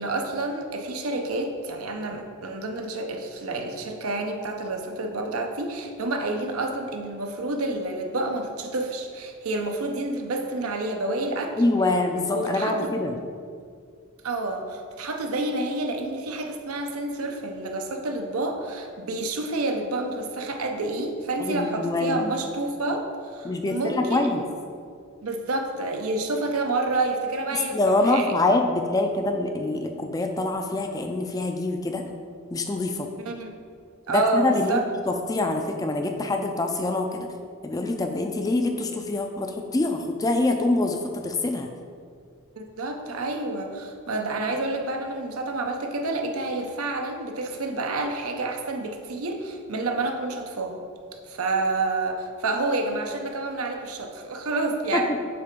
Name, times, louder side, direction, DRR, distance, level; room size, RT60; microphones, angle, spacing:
voice 1, 0.0-11.5 12.3-13.0 14.2-24.4 25.2-28.3 33.2-33.5 34.1-34.8 42.6-50.8 51.3-55.1, right 2 dB, 90° right, 3 dB, 0.7 m, -29 dB
voice 2, 11.6-13.2 21.4-22.3 23.4-24.4 27.5-32.0 32.5-33.1 34.1-37.3 37.6-41.7 54.9-55.0, left 2 dB, 15° left, 4 dB, 0.3 m, -25 dB
6.8 x 3.3 x 5.2 m, 2.2 s
head